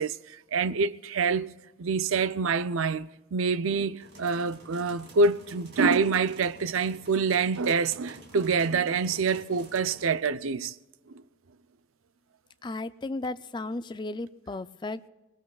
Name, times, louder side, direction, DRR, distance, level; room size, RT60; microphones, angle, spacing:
voice 1, 0.0-1.5 1.8-10.7, right 4 dB, 75° right, 0.5 m, -26 dB
sound 1, 4.0-10.1, right 2 dB, 55° right, 2.5 m, -50 dB
voice 2, 12.6-15.1, left 2 dB, 20° left, 0.4 m, -35 dB
24.5 x 20.0 x 2.4 m
head